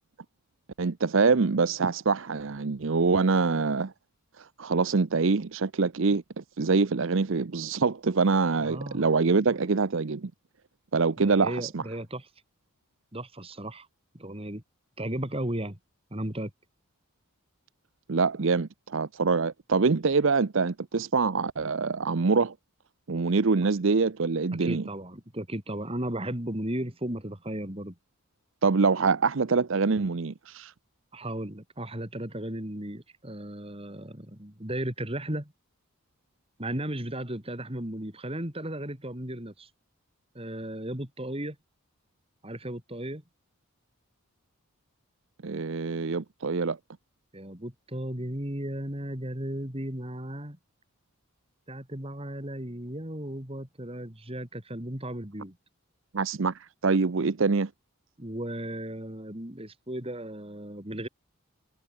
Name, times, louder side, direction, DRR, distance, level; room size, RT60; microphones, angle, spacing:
voice 1, 0.8-3.9 4.4-10.3 10.9-11.8 18.1-22.5 23.1-24.8 28.6-30.7 45.4-46.8 56.1-57.7, right 4 dB, 60° right, 0.7 m, -25 dB
voice 2, 8.6-9.1 11.2-12.3 13.1-13.9 14.1-14.6 15.0-15.8 16.1-16.5 24.5-28.0 31.1-35.5 36.6-39.7 40.4-41.6 42.4-43.2 47.3-50.6 51.7-55.6 58.2-61.1, right 1 dB, 25° right, 3.6 m, -35 dB
head